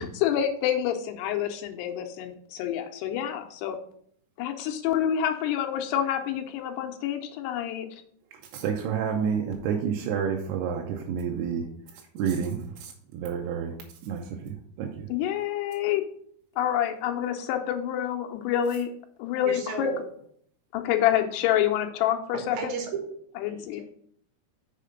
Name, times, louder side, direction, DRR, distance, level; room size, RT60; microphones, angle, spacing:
voice 1, 0.0-3.8 4.4-7.9 15.1-16.0 16.6-18.9 19.2-19.9 20.7-22.8 23.4-23.8, left 10 dB, 90° left, 4 dB, 2.8 m, -27 dB
voice 2, 8.5-11.7 12.1-13.8 14.0-15.1, right 7 dB, 85° right, 1 dB, 2.7 m, -29 dB
voice 3, 19.4-20.0 22.3-22.9 23.5-23.8, right 5 dB, 70° right, 1 dB, 3.2 m, -34 dB
6.7 x 5.0 x 5.2 m, 0.64 s
omnidirectional pair, 4.7 m